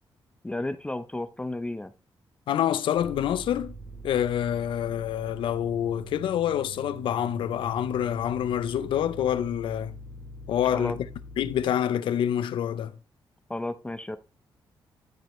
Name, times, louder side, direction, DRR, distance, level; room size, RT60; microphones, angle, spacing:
voice 1, 0.4-1.9 10.7-11.0 13.5-14.2, left 2 dB, 15° left, 0.6 m, -32 dB
voice 2, 2.5-3.7 4.0-9.9 10.5-11.1 11.4-13.0, left 10 dB, 90° left, 0.6 m, -27 dB
sound 1, 2.9-11.6, right 1 dB, 45° left, 2.8 m, -43 dB
13.5 x 4.9 x 3.1 m
cardioid pair, 95°, 8 cm